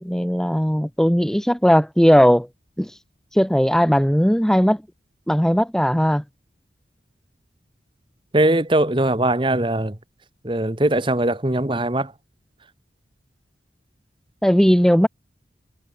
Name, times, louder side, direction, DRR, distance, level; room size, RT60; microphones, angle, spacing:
voice 1, 0.0-2.5 2.8-2.9 3.3-4.8 5.3-6.2 14.4-15.1, equal, 5° left, 0.7 m, -17 dB
voice 2, 8.3-9.9 10.4-12.1, right 1 dB, 25° right, 1.3 m, -20 dB
head